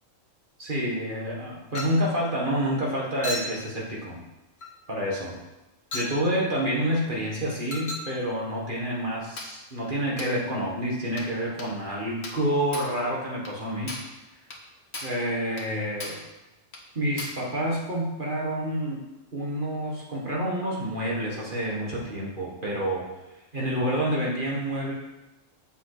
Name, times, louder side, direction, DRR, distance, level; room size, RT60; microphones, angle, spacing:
voice 1, 0.6-4.2 4.9-5.4 5.9-14.0 15.0-16.2 17.0-19.1 19.3-23.1 23.5-24.9, equal, 40° right, -4 dB, 1.8 m, -28 dB
Chink clink, 1.8-2.1 3.2-3.6 4.6-4.8 5.9-6.2 7.7-8.1 9.4-9.6 10.2-10.4 11.2-11.3 11.6-11.8 12.2-12.5 12.7-13.0 13.5-13.6 13.9-14.2 14.5-14.6 14.9-15.2 15.6-15.7 16.0-16.3 16.7-16.9 17.2-17.5, left 1 dB, 55° left, 1.4 m, -36 dB
7.3 x 7.1 x 4.9 m, 1.0 s
omnidirectional pair, 1.3 m